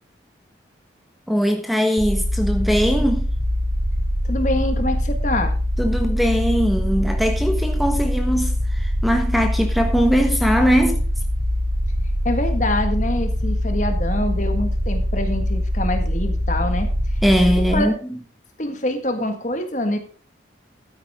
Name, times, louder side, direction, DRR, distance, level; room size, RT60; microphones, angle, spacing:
voice 1, 1.3-3.3 5.8-11.0 17.2-17.9, equal, ahead, 1.2 m, -20 dB
sound 1, 2.0-17.8, equal, 70° right, 4.3 m, -23 dB
voice 2, 4.2-5.6 12.2-17.2 17.6-18.0 18.6-20.0, left 1 dB, 40° left, 1.7 m, -25 dB
12.5 x 9.8 x 3.6 m
head